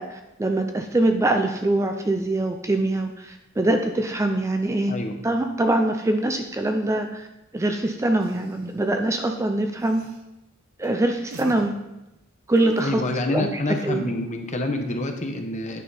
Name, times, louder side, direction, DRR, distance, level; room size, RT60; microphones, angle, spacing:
voice 1, 0.0-4.9 5.2-7.3 7.5-10.0 10.8-11.7 12.5-13.0 13.3-14.1, right 1 dB, 15° right, 5 dB, 0.4 m, -23 dB
sound 1, 8.2-8.9 9.8-10.2 10.8-11.0 11.3-11.7 12.6-12.8, right 2 dB, 75° right, 0.9 m, -39 dB
voice 2, 12.8-15.8, left 2 dB, 35° left, 5 dB, 0.9 m, -27 dB
9.2 x 5.7 x 4.2 m, 0.93 s
head